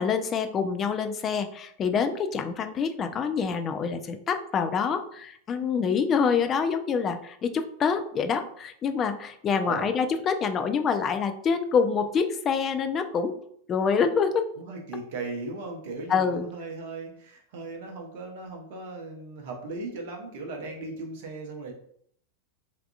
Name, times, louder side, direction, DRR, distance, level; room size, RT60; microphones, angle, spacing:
voice 1, 0.0-13.3 13.7-14.4 16.1-16.5, left 6 dB, 25° left, 8 dB, 0.3 m, -26 dB
voice 2, 14.6-21.7, right 3 dB, 50° right, 1 dB, 0.6 m, -37 dB
3.6 x 2.3 x 2.3 m, 0.66 s
figure-of-eight pair, 90°, 0 cm